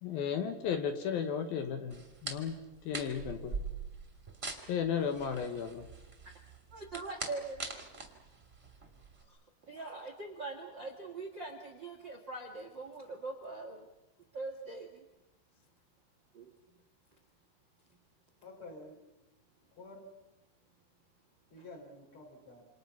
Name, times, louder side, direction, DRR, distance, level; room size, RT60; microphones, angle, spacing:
voice 1, 0.0-2.6 2.9-3.6 4.7-5.8, left 7 dB, 70° left, 7 dB, 2.4 m, -34 dB
sound 1, 1.9-9.2, right 4 dB, 20° right, 2.0 m, -43 dB
voice 2, 6.7-7.7 9.3-9.4 9.6-13.9 14.3-15.0 16.3-16.5, right 3 dB, 70° right, 4 dB, 1.0 m, -42 dB
voice 3, 18.4-19.0 19.7-20.1 21.5-22.7, left 2 dB, 25° left, 2 dB, 4.9 m, -50 dB
28.5 x 27.5 x 5.8 m, 1.0 s
omnidirectional pair, 5.7 m